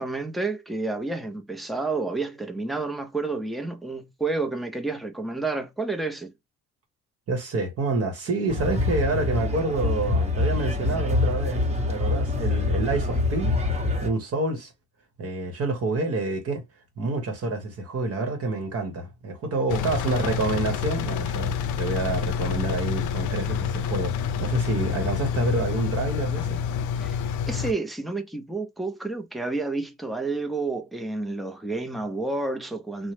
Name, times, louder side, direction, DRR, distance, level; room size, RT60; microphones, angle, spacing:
voice 1, 0.0-6.3 27.0-27.2 27.5-33.1, right 3 dB, ahead, 0.5 m, -30 dB
voice 2, 7.3-13.5 14.0-14.7 15.2-16.6 17.0-26.6, right 3 dB, 50° right, 0.9 m, -28 dB
sound 1, 8.5-14.1, left 3 dB, 20° right, 0.9 m, -25 dB
Engine, 19.7-27.7, left 7 dB, 80° left, 0.5 m, -28 dB
2.9 x 2.0 x 3.1 m
cardioid pair, 90°, 30 cm